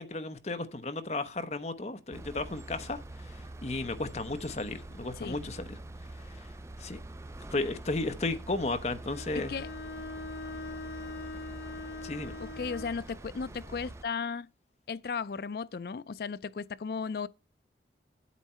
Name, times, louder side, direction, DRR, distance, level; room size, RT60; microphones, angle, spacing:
voice 1, 0.0-5.8 6.2-6.5 6.8-7.0 7.5-9.5 12.0-12.3, left 2 dB, 35° left, 0.8 m, -34 dB
sound 1, 2.1-14.0, right 1 dB, 15° right, 0.4 m, -45 dB
Bowed string instrument, 9.1-13.0, left 3 dB, 90° left, 1.2 m, -42 dB
voice 2, 9.3-9.7 12.4-14.5 14.9-17.3, left 5 dB, 55° left, 0.4 m, -35 dB
9.1 x 8.3 x 4.3 m
head